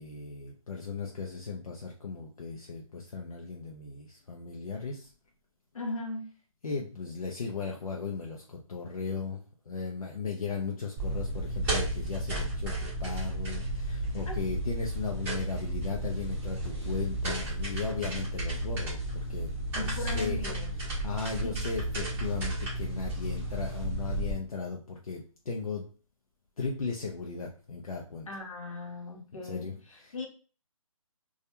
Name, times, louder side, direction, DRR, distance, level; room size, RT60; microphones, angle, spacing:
voice 1, 0.0-5.1 6.6-9.4 9.7-20.4 20.8-25.8 26.6-28.3 29.4-30.1, left 5 dB, 85° left, -1 dB, 0.6 m, -36 dB
voice 2, 5.7-6.2 14.3-14.4 19.7-20.7 21.4-21.6 28.3-30.3, left 3 dB, 70° left, 1 dB, 0.9 m, -38 dB
sound 1, 11.0-24.3, right 1 dB, 10° right, 0.7 m, -33 dB
2.3 x 2.2 x 2.8 m, 0.39 s
figure-of-eight pair, 150°, 18 cm